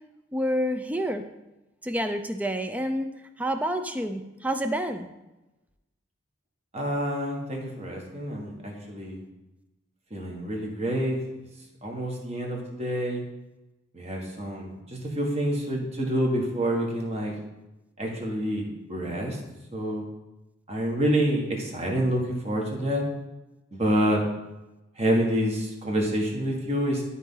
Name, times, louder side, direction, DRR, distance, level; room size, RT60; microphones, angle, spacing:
voice 1, 0.3-1.2 1.8-3.1 3.4-5.1, equal, 5° right, 7 dB, 0.4 m, -28 dB
voice 2, 6.7-9.2 10.1-11.2 11.8-13.2 13.9-14.7 15.1-17.3 18.0-19.4 19.7-20.0 20.7-23.0 23.7-24.2 25.0-27.0, equal, 30° right, 0 dB, 1.5 m, -27 dB
12.0 x 4.1 x 3.8 m, 1.0 s
head